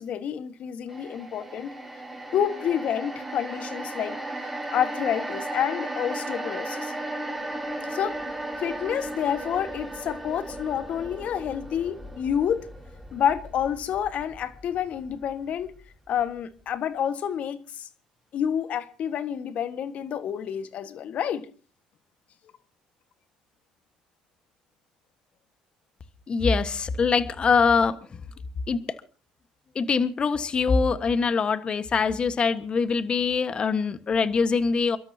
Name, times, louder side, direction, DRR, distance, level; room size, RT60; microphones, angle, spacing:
voice 1, 0.0-1.7 2.3-4.2 4.7-6.9 7.9-8.2 8.6-12.7 13.1-15.7 16.1-17.9 18.3-21.5, left 9 dB, 60° left, 1.6 m, -28 dB
sound 1, 0.9-15.2 15.6-15.7, right 1 dB, 5° right, 7.3 m, -36 dB
voice 2, 26.3-28.0 28.7-28.8 29.7-35.0, left 5 dB, 40° left, 1.4 m, -23 dB
29.0 x 13.0 x 2.8 m
supercardioid pair, 80°, 3 cm